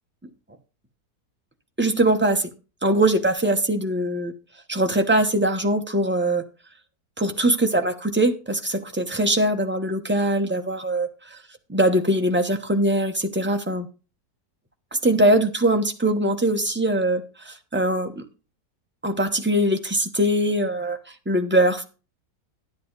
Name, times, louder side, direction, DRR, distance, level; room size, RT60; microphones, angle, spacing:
voice 1, 1.8-2.5 2.8-4.3 4.7-6.4 7.2-11.4 11.7-13.9 15.0-18.2 19.0-21.0 21.3-21.8, right 1 dB, 10° right, 5 dB, 0.9 m, -22 dB
11.0 x 9.9 x 4.0 m, 0.33 s
omnidirectional pair, 1.7 m